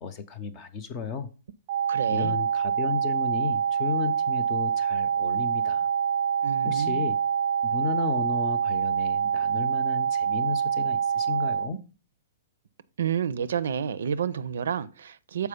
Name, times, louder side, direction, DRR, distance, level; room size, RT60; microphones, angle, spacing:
voice 1, 0.0-1.3 2.1-5.9 6.6-7.2 7.6-11.8, left 6 dB, 25° left, 0.7 m, -34 dB
sound 1, 1.7-11.7, right 7 dB, 35° right, 0.4 m, -26 dB
voice 2, 1.9-2.4 6.4-7.1 13.0-15.5, right 8 dB, 85° right, 0.5 m, -30 dB
6.9 x 4.7 x 5.0 m
hypercardioid pair, 165°, 0 cm